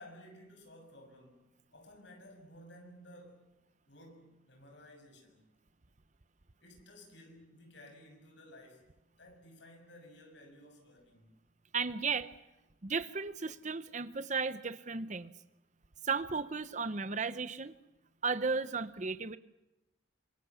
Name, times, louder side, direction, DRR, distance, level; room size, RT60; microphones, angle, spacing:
voice 1, 0.0-3.5 3.9-5.5 6.6-11.4, left 1 dB, 65° left, 4 dB, 6.7 m, -55 dB
voice 2, 11.7-12.3 12.8-15.3 16.0-17.7 18.2-19.4, right 4 dB, 40° right, 13 dB, 0.8 m, -34 dB
26.0 x 24.5 x 7.0 m, 0.97 s
head